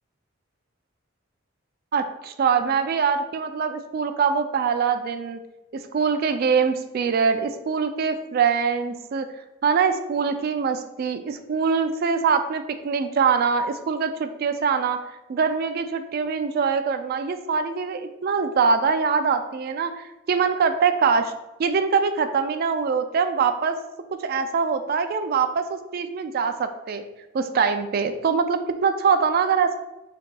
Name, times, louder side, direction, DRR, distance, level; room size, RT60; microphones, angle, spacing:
voice 1, 1.9-5.4 5.7-9.3 9.6-15.0 15.3-21.3 21.6-23.8 24.2-27.0 27.3-29.8, right 5 dB, 50° right, 9 dB, 0.3 m, -23 dB
6.1 x 2.7 x 2.3 m, 0.99 s
head